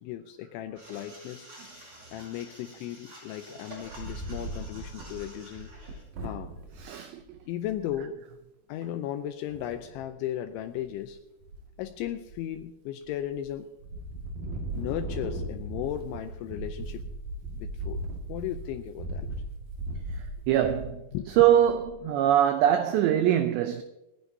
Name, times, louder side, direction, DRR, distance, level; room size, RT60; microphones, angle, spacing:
voice 1, 0.0-1.5 2.1-5.7 6.2-6.5 7.5-8.2 8.7-11.2 11.8-13.7 14.7-17.0 17.6-18.0 18.3-19.4 21.1-21.5, left 11 dB, 80° left, 2.8 m, -36 dB
sound 1, 0.8-6.0, right 1 dB, 30° right, 6.5 m, -49 dB
Wind, 3.7-6.8 7.3-7.4 7.6-8.0 9.5-10.1 10.6-11.1 11.4-12.6 13.0-13.5 13.8-22.0, right 1 dB, 55° right, 3.0 m, -38 dB
voice 2, 20.5-21.0 21.4-23.8, right 11 dB, 85° right, 2.5 m, -22 dB
27.5 x 9.9 x 2.7 m
omnidirectional pair, 5.8 m